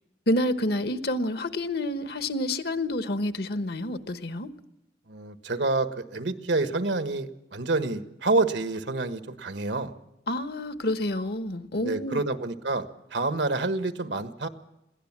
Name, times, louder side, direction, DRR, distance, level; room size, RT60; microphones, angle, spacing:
voice 1, 0.3-4.5 10.3-12.2, left 1 dB, 60° left, 1.2 m, -28 dB
voice 2, 5.1-9.9 11.8-14.5, right 3 dB, 80° right, 1.4 m, -28 dB
22.0 x 16.5 x 7.4 m
head